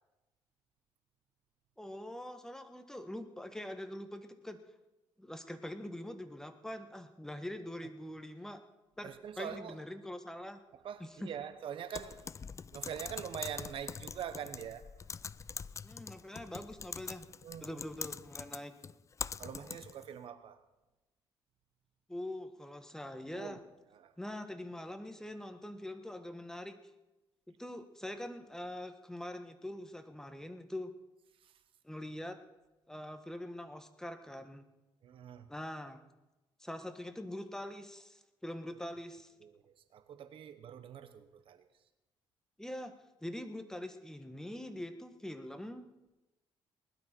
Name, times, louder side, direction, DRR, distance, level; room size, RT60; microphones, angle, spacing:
voice 1, 1.8-4.6 5.2-8.6 9.0-10.6 11.2-11.3 15.8-17.3 17.6-18.7 22.1-23.6 24.2-26.8 27.6-30.9 31.8-32.4 32.9-34.6 35.5-36.0 36.6-39.3 42.6-42.9 43.2-45.9, left 1 dB, 5° left, 7 dB, 1.5 m, -43 dB
voice 2, 9.0-9.8 10.8-12.4 12.7-14.9 17.4-17.8 19.4-20.6 23.3-23.6 23.9-24.2 31.4-31.5 35.0-35.5 39.4-41.7, right 8 dB, 70° right, 11 dB, 1.1 m, -44 dB
Typing, 11.9-20.1, left 6 dB, 35° left, 0.4 m, -44 dB
20.0 x 12.0 x 4.5 m, 1.0 s
cardioid pair, 85°, 10 cm